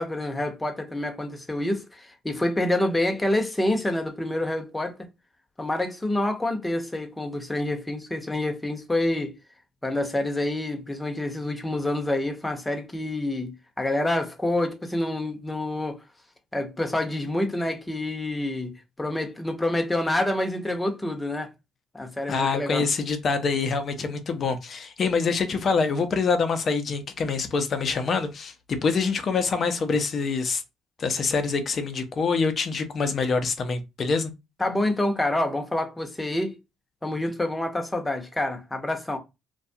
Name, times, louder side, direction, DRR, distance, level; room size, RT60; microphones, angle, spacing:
voice 1, 0.0-5.1 5.6-9.3 9.8-16.0 16.5-21.5 21.9-22.8 34.6-36.6 37.0-39.2, left 1 dB, 15° left, 0.8 m, -27 dB
voice 2, 22.3-30.6 31.0-34.3, left 4 dB, 50° left, 0.6 m, -25 dB
2.2 x 2.2 x 2.7 m
supercardioid pair, 60°, 0 cm